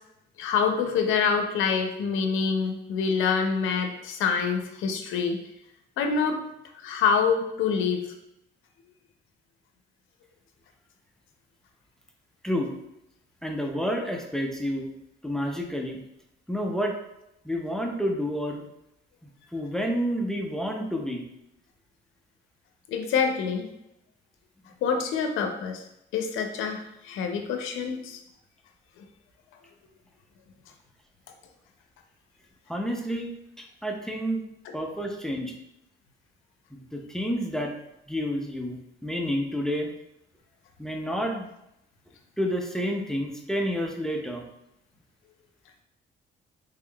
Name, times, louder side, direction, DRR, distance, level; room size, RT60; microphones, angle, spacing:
voice 1, 0.4-5.4 6.0-6.4 6.8-8.1 22.9-23.7 24.8-25.8 26.1-28.2, left 6 dB, 85° left, 4 dB, 0.5 m, -26 dB
voice 2, 13.4-14.9 15.2-16.0 16.5-16.9 17.4-18.7 19.2-21.2 32.7-33.3 33.6-34.4 34.7-35.6 36.7-37.7 38.1-39.9 40.8-41.5 42.4-44.4, equal, 5° left, 2 dB, 0.5 m, -29 dB
3.6 x 3.4 x 2.2 m, 0.82 s
cardioid pair, 90°, 20 cm